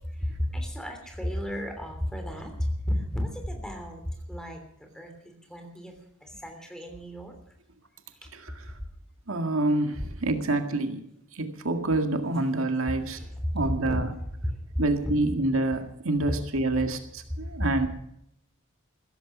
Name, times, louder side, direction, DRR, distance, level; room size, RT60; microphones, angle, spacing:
voice 1, 0.0-7.5 8.2-8.3 8.8-8.9 10.0-10.1 12.9-14.0 14.4-15.1 16.7-16.8 17.4-17.5, equal, 5° left, 4 dB, 3.1 m, -33 dB
voice 2, 9.3-11.0 11.3-13.2 13.5-14.1 14.8-17.9, right 2 dB, 80° right, 6 dB, 1.9 m, -27 dB
16.0 x 14.0 x 6.1 m, 0.75 s
head